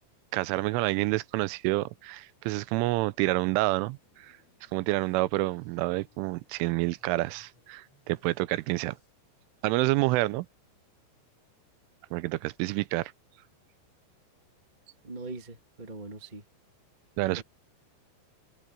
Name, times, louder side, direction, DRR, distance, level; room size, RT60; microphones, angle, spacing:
voice 1, 0.3-4.4 4.7-9.0 9.6-10.5 12.1-13.1 17.2-17.4, right 19 dB, 85° right, 3.1 m, -28 dB
sound 1, 3.6-9.1, left 2 dB, 30° left, 7.8 m, -66 dB
voice 2, 15.0-16.4 17.4-17.5, right 3 dB, 40° right, 0.6 m, -41 dB
omnidirectional pair, 5.6 m